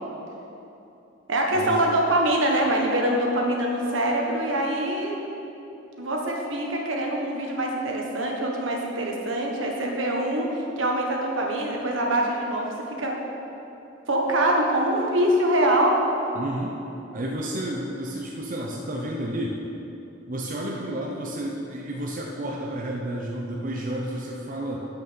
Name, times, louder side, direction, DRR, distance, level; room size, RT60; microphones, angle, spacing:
voice 1, 1.3-5.2 6.0-13.1 14.1-16.0, right 1 dB, 75° right, 0 dB, 1.4 m, -24 dB
voice 2, 16.3-16.8 17.1-19.6 20.3-24.9, right 1 dB, 45° right, -2 dB, 0.8 m, -31 dB
8.3 x 6.6 x 6.9 m, 3.0 s
head